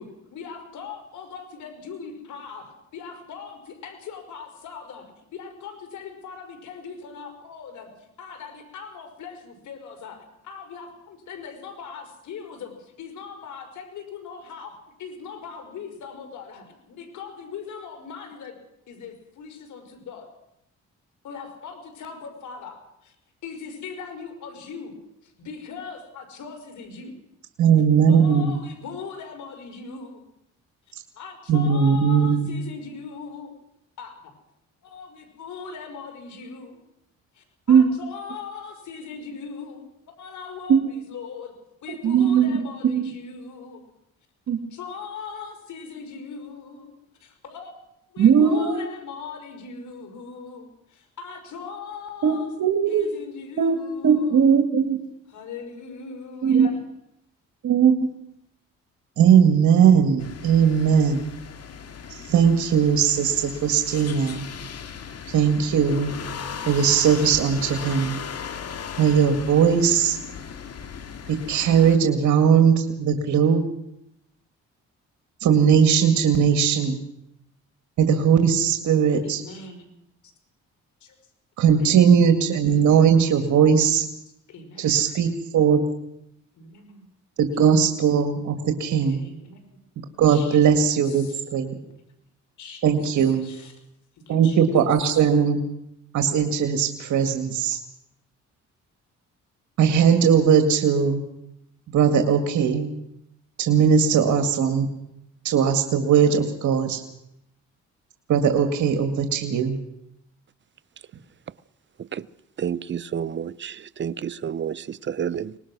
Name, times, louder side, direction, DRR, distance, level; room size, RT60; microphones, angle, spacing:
voice 1, 0.0-18.6 18.9-20.3 21.2-23.2 23.4-25.0 25.2-27.1 28.1-30.2 31.2-33.5 34.0-34.3 34.8-36.8 37.3-39.8 40.2-41.5 41.8-43.8 44.7-46.9 47.2-47.7 48.1-52.5 52.9-54.6 55.3-56.8 79.2-79.9 81.0-81.2 81.7-82.0 84.5-85.1 86.5-87.0 89.1-89.6 90.3-90.7 91.1-91.4 92.6-92.8 93.4-93.7 94.2-94.6, left 5 dB, 75° left, 5.3 m, -40 dB
voice 2, 27.6-28.5 31.5-32.6 37.7-37.9 40.7-40.8 42.0-42.5 42.9-43.1 44.5-44.6 48.2-48.8 52.2-53.1 53.6-53.8 54.0-55.0 56.4-56.7 57.6-58.1 59.2-61.2 62.2-64.5 65.3-66.1 66.7-68.2 69.0-70.2 71.3-73.6 75.4-77.0 78.0-79.4 81.6-84.1 84.8-85.8 87.4-89.3 90.2-91.3 91.5-91.8 92.8-93.5 94.3-95.6 96.1-97.8 99.8-101.2 101.9-102.9 103.6-104.9 105.4-107.0 108.3-109.8, right 7 dB, 75° right, 2.1 m, -19 dB
sound 1, 60.2-72.0, left 7 dB, 55° left, 2.2 m, -37 dB
voice 3, 112.6-115.6, right 8 dB, 40° right, 0.7 m, -30 dB
24.0 x 19.5 x 6.2 m
cardioid pair, 90°, 30 cm